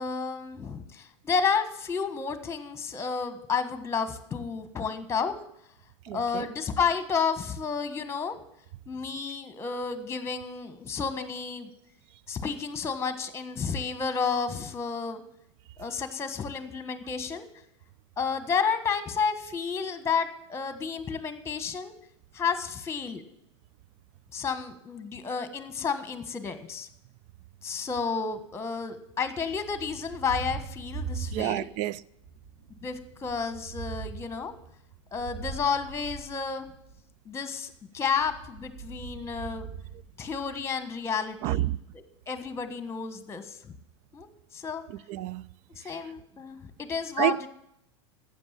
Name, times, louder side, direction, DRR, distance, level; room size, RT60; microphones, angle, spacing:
voice 1, 0.0-5.3 6.1-8.4 8.9-11.7 12.3-15.2 15.8-17.5 18.2-21.9 22.3-23.2 24.3-26.9 27.6-31.7 32.8-34.5 35.1-36.7 37.2-39.7 40.2-41.6 41.9-43.7 44.1-44.8 45.7-47.5, left 5 dB, 15° left, 1.5 m, -31 dB
voice 2, 6.1-6.5 31.3-32.0 41.4-41.8 44.9-45.5 47.2-47.5, right 15 dB, 45° right, 0.5 m, -29 dB
Thunder, 29.4-31.9 32.2-37.0 38.1-40.7, right 5 dB, 80° right, 6.8 m, -41 dB
12.5 x 8.5 x 7.3 m
hypercardioid pair, 95°, 15 cm